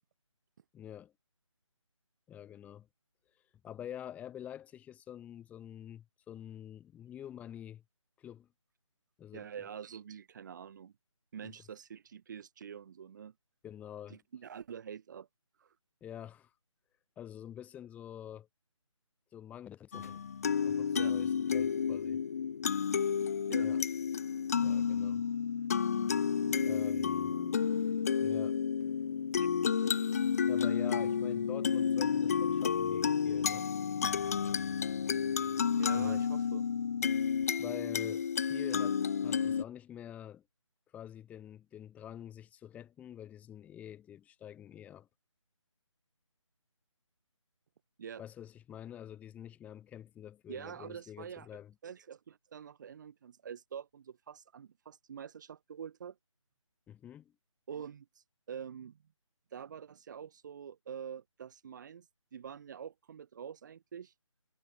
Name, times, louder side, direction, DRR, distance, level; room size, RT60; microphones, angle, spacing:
voice 1, 0.7-1.1 2.3-2.9 3.6-7.8 8.2-8.5 9.2-9.5 11.4-11.5 13.6-14.2 16.0-16.5 17.2-18.5 19.3-22.2 23.6-23.8 24.6-25.3 26.6-27.4 28.2-28.6 30.5-33.7 35.9-36.2 37.6-40.4 40.9-45.1 48.2-51.7 56.9-57.3, left 10 dB, 10° left, 7.8 m, -47 dB
voice 2, 9.3-10.9 11.3-13.3 14.1-15.3 15.6-15.7 20.9-21.1 23.5-23.7 26.4-27.7 29.4-29.5 35.8-36.7 48.0-48.2 50.5-51.5 51.8-56.2 57.7-59.0 59.5-64.1, right 8 dB, 35° right, 4.1 m, -46 dB
sound 1, 19.9-39.6, left 7 dB, 30° left, 0.6 m, -31 dB
figure-of-eight pair, 155°, 17 cm